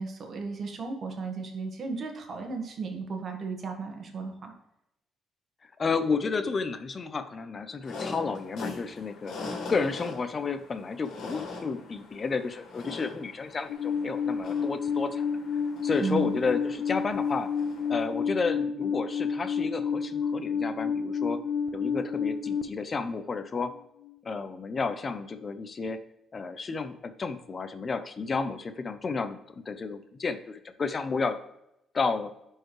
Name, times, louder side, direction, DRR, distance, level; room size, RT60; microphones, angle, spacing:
voice 1, 0.0-4.5 16.0-16.4, right 4 dB, 50° right, 4 dB, 1.5 m, -34 dB
voice 2, 5.6-15.2 15.8-17.5 17.9-21.4 21.7-23.7 24.2-26.0 26.3-31.4 31.9-32.3, left 4 dB, 40° left, 10 dB, 0.6 m, -31 dB
sound 1, 7.8-18.1, left 3 dB, 70° left, 2.0 m, -42 dB
Alarm, 13.7-22.6, left 6 dB, 90° left, 0.5 m, -30 dB
10.5 x 4.6 x 3.2 m, 0.83 s
cardioid pair, 90°, 0 cm